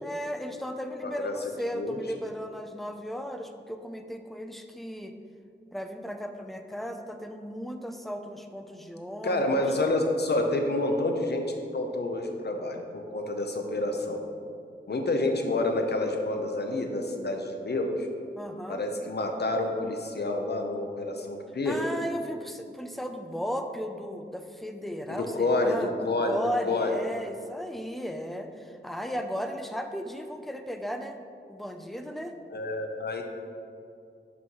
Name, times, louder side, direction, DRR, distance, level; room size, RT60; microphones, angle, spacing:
voice 1, 0.0-5.1 5.7-9.7 18.4-18.8 21.6-31.2 31.5-32.3, equal, ahead, 6 dB, 0.4 m, -35 dB
voice 2, 1.0-1.3 1.7-2.0 9.2-11.4 11.7-14.2 14.9-18.1 18.7-21.8 25.1-26.3 26.6-26.9 32.5-33.2, left 2 dB, 60° left, 3 dB, 0.7 m, -28 dB
6.1 x 3.0 x 5.4 m, 2.4 s
wide cardioid pair, 65°, 19 cm